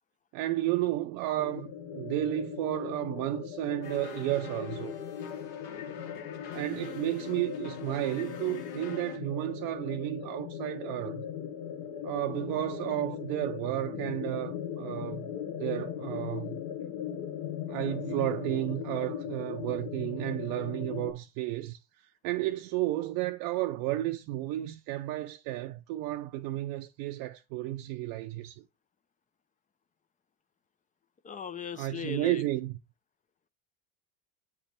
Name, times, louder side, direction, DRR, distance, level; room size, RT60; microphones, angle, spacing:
voice 1, 0.3-5.0 6.5-11.2 12.0-15.3 15.6-16.6 17.7-28.6 31.8-32.7, right 16 dB, 55° right, 0.6 m, -32 dB
sound 1, 1.4-21.1, left 9 dB, 45° left, 1.0 m, -39 dB
sound 2, 3.8-9.2, left 7 dB, 65° left, 1.6 m, -45 dB
voice 2, 31.2-32.5, left 7 dB, 20° left, 0.5 m, -39 dB
8.3 x 3.3 x 4.3 m
supercardioid pair, 110°, 42 cm